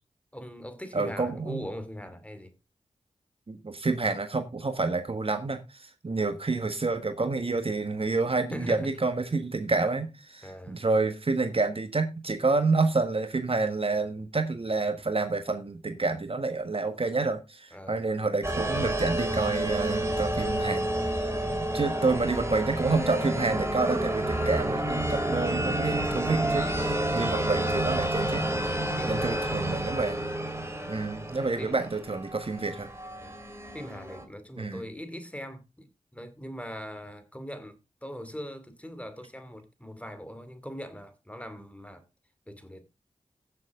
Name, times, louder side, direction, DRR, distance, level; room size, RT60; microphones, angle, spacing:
voice 1, 0.3-2.5 8.5-8.9 10.4-10.8 17.7-18.0 21.7-22.0 26.6-26.9 29.0-29.8 30.8-30.9 31.6-31.8 33.2-33.4 33.7-42.0 42.5-42.8, equal, 10° left, 2.6 m, -41 dB
voice 2, 0.9-1.7 3.5-20.9 21.2-28.5 29.0-30.2 30.9-32.9 34.6-34.8, right 3 dB, 50° right, 1.5 m, -28 dB
sound 1, 18.4-34.2, right 1 dB, 20° right, 2.7 m, -30 dB
15.0 x 7.2 x 3.7 m
cardioid pair, 40°, 12 cm